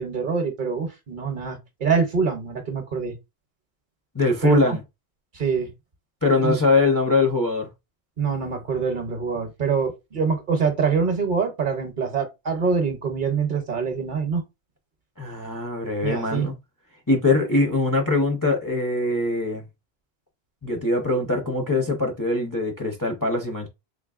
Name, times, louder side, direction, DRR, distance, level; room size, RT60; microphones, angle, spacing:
voice 1, 0.0-3.1 4.4-4.8 5.3-5.7 6.4-6.6 8.2-14.4 16.0-16.5, right 5 dB, 50° right, 0.9 m, -25 dB
voice 2, 4.1-4.8 6.2-7.7 15.2-16.5 17.1-19.6 20.6-23.7, left 3 dB, 25° left, 0.6 m, -22 dB
3.9 x 2.9 x 2.4 m
omnidirectional pair, 1.1 m